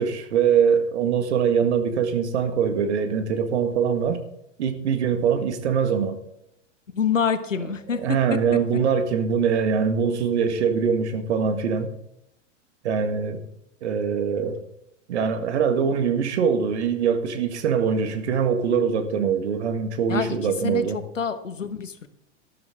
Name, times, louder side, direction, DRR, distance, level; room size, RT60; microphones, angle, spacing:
voice 1, 0.0-4.2 4.6-6.2 7.9-11.9 12.8-13.4 13.8-14.6 15.1-21.0, right 6 dB, 65° right, 1.9 m, -23 dB
voice 2, 6.9-8.4 20.1-22.1, left 6 dB, 85° left, 1.3 m, -27 dB
13.0 x 12.5 x 3.8 m
figure-of-eight pair, 95°, 37 cm